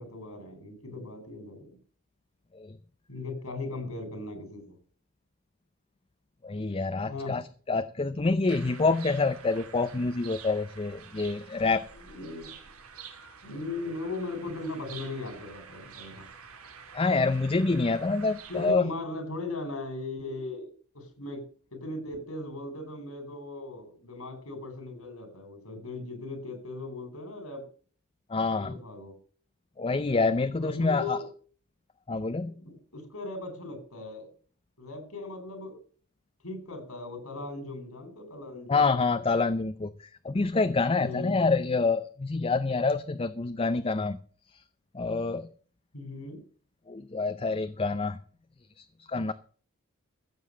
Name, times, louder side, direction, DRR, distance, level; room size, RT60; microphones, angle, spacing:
voice 1, 0.0-1.8 3.1-4.8 7.1-7.3 12.0-12.7 13.4-16.3 18.5-21.4 21.7-27.6 28.5-29.1 30.6-31.2 32.4-34.3 34.8-35.8 36.4-39.0 40.9-41.6 45.9-46.4, left 2 dB, 85° left, 8 dB, 4.5 m, -38 dB
voice 2, 6.4-11.9 16.9-18.9 28.3-28.8 29.8-31.2 32.1-32.5 38.7-44.2 44.5-44.6 44.9-45.5 46.9-48.2 48.8-49.3, left 3 dB, 25° left, 10 dB, 0.6 m, -27 dB
sound 1, 8.5-18.7, right 6 dB, 80° right, 2.4 m, -48 dB
15.0 x 7.8 x 6.7 m, 0.43 s
head